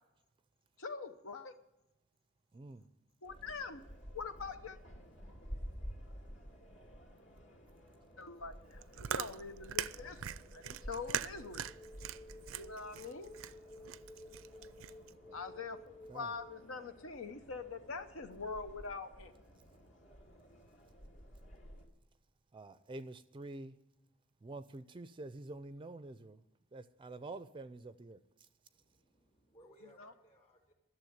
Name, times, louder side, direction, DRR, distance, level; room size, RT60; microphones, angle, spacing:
voice 1, 0.8-1.5 3.2-3.8 4.1-4.8 8.2-11.7 12.5-13.3 15.3-19.3 29.8-30.1, left 4 dB, 80° left, 0.8 m, -44 dB
sound 1, 3.2-21.9, equal, 65° left, 2.8 m, -53 dB
sound 2, 7.2-16.9, left 2 dB, 15° left, 0.8 m, -57 dB
Chewing mastication, 8.7-15.1, right 10 dB, 80° right, 0.4 m, -42 dB
voice 2, 22.5-23.7 24.4-26.4 26.7-28.2, right 2 dB, 25° right, 0.4 m, -47 dB
voice 3, 28.7-30.7, right 1 dB, 30° left, 2.6 m, -63 dB
12.0 x 7.0 x 9.4 m
head